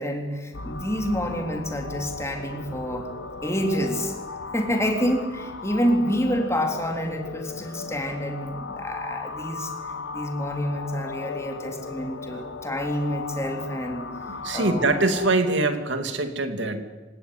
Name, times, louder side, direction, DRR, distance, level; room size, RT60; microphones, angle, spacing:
voice 1, 0.0-3.1 3.4-4.1 4.5-9.7 10.1-14.1 14.5-14.9, equal, 15° left, 3 dB, 3.7 m, -28 dB
sound 1, 0.5-15.3, left 4 dB, 75° left, 1.2 m, -37 dB
voice 2, 14.4-16.8, right 2 dB, 70° right, 7 dB, 2.6 m, -23 dB
27.0 x 18.0 x 9.7 m, 1.2 s
head